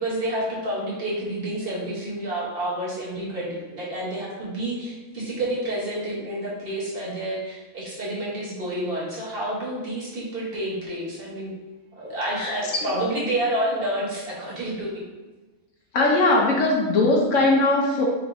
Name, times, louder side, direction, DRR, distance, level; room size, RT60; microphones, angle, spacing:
voice 1, 0.0-11.5 11.9-15.1, right 1 dB, 45° right, -6 dB, 1.1 m, -29 dB
voice 2, 12.3-13.0 15.9-18.0, left 2 dB, 65° left, -1 dB, 1.0 m, -20 dB
4.4 x 3.3 x 2.5 m, 1.2 s
omnidirectional pair, 1.5 m